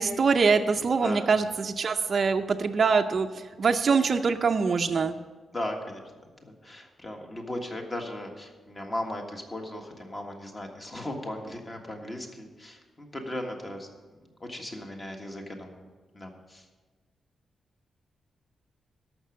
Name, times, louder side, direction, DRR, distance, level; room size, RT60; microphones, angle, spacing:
voice 1, 0.0-5.2, right 5 dB, 45° right, 5 dB, 0.5 m, -24 dB
voice 2, 5.5-6.0 6.4-13.9 14.4-15.9 16.1-16.6, left 1 dB, 25° left, 2 dB, 1.6 m, -37 dB
13.0 x 6.0 x 6.5 m, 1.3 s
wide cardioid pair, 140°, 0 cm